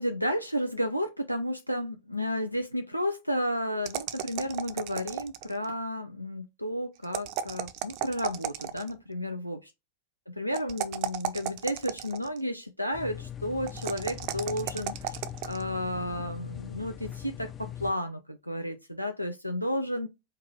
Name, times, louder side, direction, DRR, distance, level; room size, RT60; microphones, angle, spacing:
voice 1, 0.0-9.6 10.3-15.2 15.4-20.1, equal, 90° left, 0.4 m, -32 dB
sound 1, 3.8-5.6 7.0-9.0 10.5-12.4 13.7-15.6, right 10 dB, 45° right, 0.5 m, -34 dB
sound 2, 12.9-17.9, left 10 dB, 25° left, 0.5 m, -41 dB
4.5 x 2.4 x 3.3 m
figure-of-eight pair, 90°, 0 cm